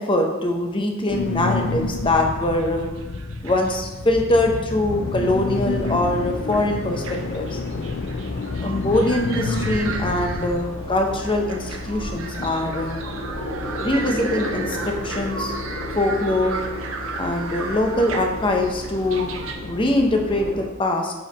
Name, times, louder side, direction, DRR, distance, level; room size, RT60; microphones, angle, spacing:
voice 1, 0.0-2.9 3.4-7.6 8.6-13.0 13.8-15.5 15.9-16.6 17.2-19.3 19.6-21.1, left 1 dB, 25° left, 3 dB, 0.8 m, -23 dB
sound 1, 1.1-10.6, left 3 dB, 50° left, 0.4 m, -29 dB
sound 2, 1.5-3.9 4.4-4.9 5.4-6.0 6.3-19.5, right 4 dB, 80° right, 0.8 m, -36 dB
sound 3, 4.8-20.7, left 1 dB, 70° left, 1.5 m, -33 dB
5.1 x 4.7 x 5.2 m, 1.1 s
head